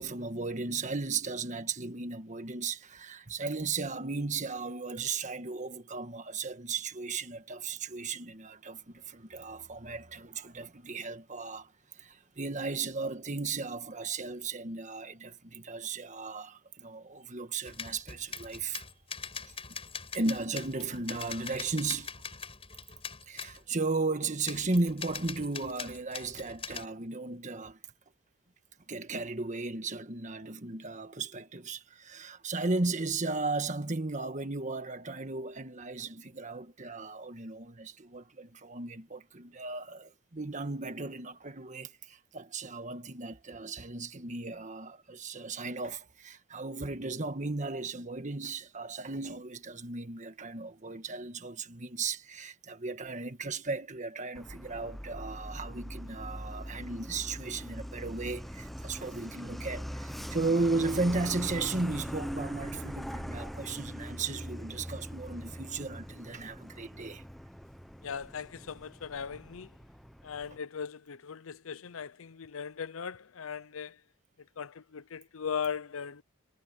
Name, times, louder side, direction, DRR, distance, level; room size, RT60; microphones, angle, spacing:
voice 1, 0.0-18.9 19.5-19.6 20.1-22.1 23.3-27.8 28.9-67.2, right 3 dB, 35° right, 1.5 m, -35 dB
sound 1, 17.6-23.6 24.4-26.9, left 6 dB, 30° left, 6.6 m, -42 dB
Truck, 54.3-70.6, equal, ahead, 0.7 m, -42 dB
voice 2, 68.0-69.7 70.2-73.9 74.6-76.2, left 7 dB, 80° left, 0.6 m, -38 dB
head